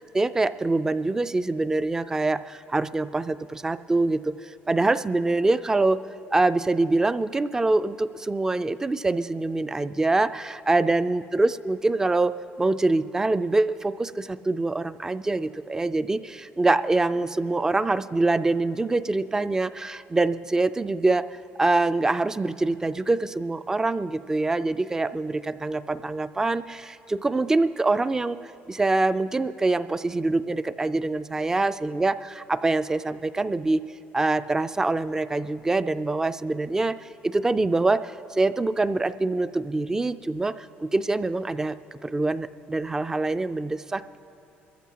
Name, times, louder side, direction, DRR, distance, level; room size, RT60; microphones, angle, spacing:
voice 1, 0.1-6.0 6.3-28.4 28.7-33.8 34.1-37.0 37.2-40.7 40.9-44.2, right 2 dB, 15° right, 13 dB, 0.3 m, -25 dB
22.0 x 14.5 x 2.9 m, 2.8 s
cardioid pair, 130°, 4 cm